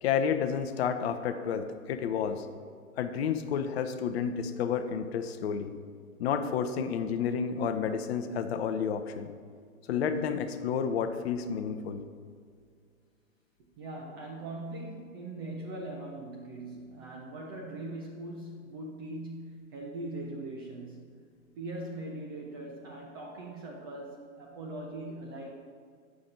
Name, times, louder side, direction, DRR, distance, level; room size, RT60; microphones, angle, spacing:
voice 1, 0.0-2.5 3.0-5.7 6.2-9.3 9.9-12.0, left 7 dB, 45° left, 8 dB, 0.7 m, -30 dB
voice 2, 13.8-21.2 21.6-25.6, right 2 dB, 20° right, -1 dB, 0.4 m, -41 dB
9.1 x 6.0 x 3.8 m, 2.1 s
hypercardioid pair, 120°, 43 cm